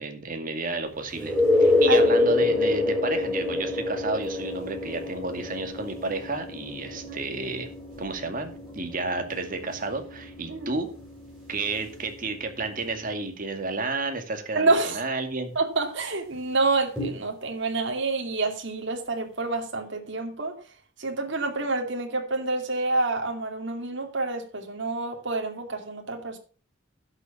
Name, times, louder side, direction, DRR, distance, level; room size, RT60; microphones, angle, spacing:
voice 1, 0.0-1.3 1.6-7.7 8.0-10.9 11.5-15.5, right 3 dB, 45° right, 2.2 m, -31 dB
sound 1, 1.1-12.7 17.0-17.1, left 2 dB, 5° right, 6.1 m, -27 dB
voice 2, 14.5-15.0 15.6-20.5 21.0-26.4, right 3 dB, 60° right, 2.6 m, -28 dB
11.5 x 7.0 x 6.0 m
head